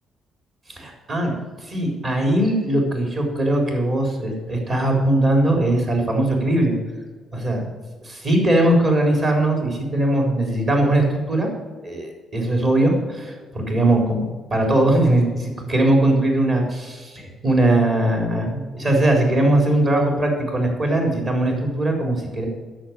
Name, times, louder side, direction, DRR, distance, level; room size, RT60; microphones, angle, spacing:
voice 1, 0.7-6.8 7.3-7.7 8.0-11.5 11.8-22.5, right 1 dB, 50° right, 2 dB, 4.1 m, -20 dB
10.0 x 6.9 x 8.9 m, 1.4 s
cardioid pair, 90°, 0 cm